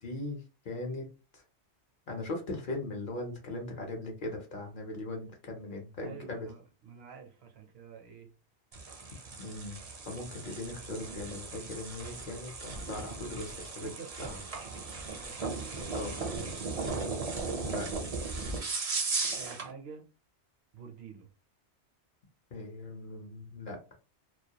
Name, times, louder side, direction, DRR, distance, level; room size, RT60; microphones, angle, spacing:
voice 1, 0.0-1.1 1.3-1.4 2.1-6.5 9.4-13.9 14.2-14.4 15.9-16.2 17.7-17.9 22.5-23.8, left 2 dB, 55° left, 0.7 m, -39 dB
voice 2, 6.0-8.4 13.8-14.6 15.1-16.5 18.4-18.9 19.4-20.0 20.7-21.3, right 5 dB, 70° right, 0.8 m, -48 dB
sound 1, 8.7-19.7, right 3 dB, 45° right, 0.5 m, -37 dB
2.3 x 2.2 x 2.7 m
omnidirectional pair, 1.2 m